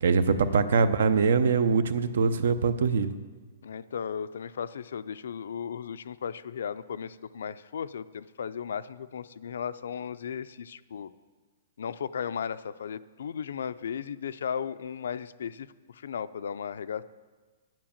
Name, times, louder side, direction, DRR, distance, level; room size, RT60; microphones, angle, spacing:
voice 1, 0.0-3.1, right 5 dB, 70° right, 13 dB, 0.7 m, -23 dB
voice 2, 3.6-11.1 11.8-17.0, left 7 dB, 75° left, 14 dB, 0.4 m, -36 dB
10.5 x 7.5 x 7.2 m, 1.4 s
hypercardioid pair, 170°, 0 cm